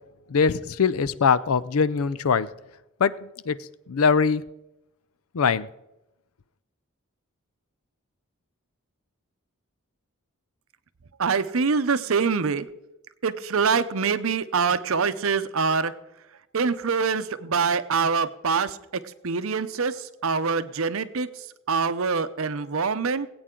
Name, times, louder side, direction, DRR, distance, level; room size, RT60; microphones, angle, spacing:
voice 1, 0.3-2.5 3.0-3.6 3.9-4.4 5.3-5.7, left 5 dB, 80° left, 0.5 m, -22 dB
voice 2, 11.2-12.6 13.2-15.9 16.5-19.9 20.2-21.3 21.7-23.3, right 5 dB, 70° right, 0.7 m, -24 dB
20.5 x 8.7 x 3.8 m
head